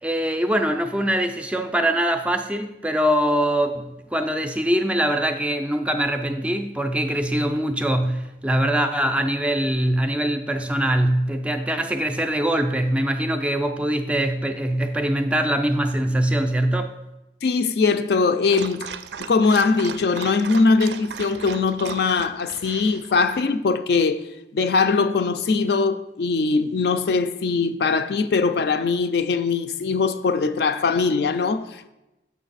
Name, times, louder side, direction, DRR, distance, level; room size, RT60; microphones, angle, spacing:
voice 1, 0.0-16.9, right 1 dB, 5° right, 0.3 m, -23 dB
voice 2, 17.4-18.9 19.2-24.2 24.5-31.9, left 4 dB, 65° left, 0.4 m, -21 dB
Dog, 18.4-23.4, right 6 dB, 75° right, 0.4 m, -37 dB
6.5 x 5.9 x 4.0 m
head